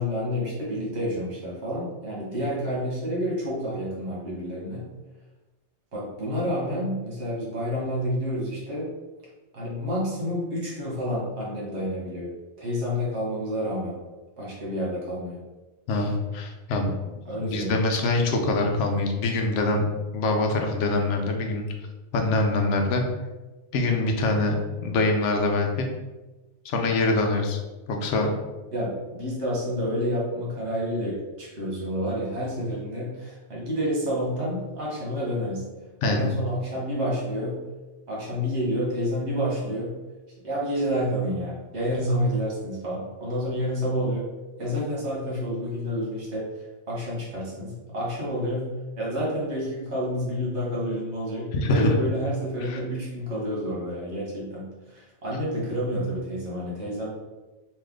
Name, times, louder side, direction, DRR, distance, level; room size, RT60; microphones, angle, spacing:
voice 1, 0.0-4.8 5.9-8.9 9.5-12.3 12.6-13.9 14.4-15.4 17.2-17.8 28.7-35.6 36.0-37.6 38.1-39.9 40.4-44.3 44.6-46.5 46.9-48.7 49.0-57.1, equal, 65° right, -5 dB, 1.5 m, -29 dB
voice 2, 15.9-19.8 20.1-21.6 22.1-23.0 23.7-24.6 24.8-25.9 26.6-27.6 27.9-28.3 36.0-36.3 51.5-51.9 52.6-52.8, left 2 dB, 80° left, 3 dB, 0.9 m, -24 dB
3.2 x 2.7 x 3.7 m, 1.1 s
omnidirectional pair, 1.2 m